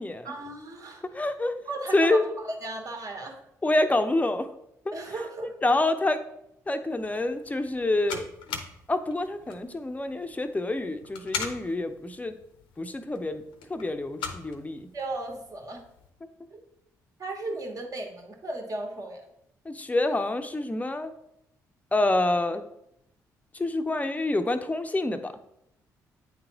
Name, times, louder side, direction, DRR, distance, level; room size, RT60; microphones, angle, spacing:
voice 1, 0.2-1.0 1.6-3.4 4.9-5.5 14.9-15.8 16.5-16.6 17.2-19.3, right 2 dB, 40° right, 2 dB, 1.3 m, -35 dB
voice 2, 1.1-1.5 1.9-2.2 3.6-4.5 4.9-5.0 5.6-6.2 6.7-8.3 8.9-12.3 12.8-13.4 13.7-14.9 19.7-21.1 21.9-22.6 23.5-25.3, left 2 dB, 15° left, 8 dB, 0.6 m, -27 dB
sound 1, 6.9-16.1, left 6 dB, 70° left, 0.7 m, -41 dB
8.6 x 3.8 x 3.0 m, 0.79 s
hypercardioid pair, 45°, 9 cm